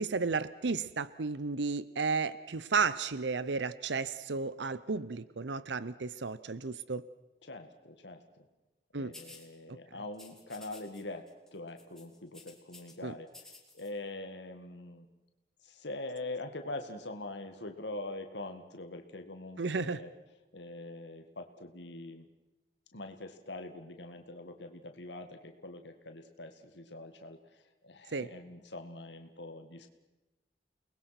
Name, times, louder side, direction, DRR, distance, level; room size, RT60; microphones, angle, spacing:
voice 1, 0.0-7.0 8.9-9.1 13.0-13.1 19.6-20.0 28.1-28.3, right 4 dB, 85° right, 17 dB, 0.7 m, -33 dB
voice 2, 7.4-8.2 8.9-15.1 15.6-20.1 20.5-22.3 22.9-29.9, left 2 dB, 85° left, 6 dB, 2.0 m, -43 dB
sound 1, 9.1-9.5 10.1-11.0 11.3-11.5 11.8-12.9 13.3-13.9, left 3 dB, 5° left, 3.0 m, -53 dB
29.5 x 20.5 x 6.0 m, 1.0 s
head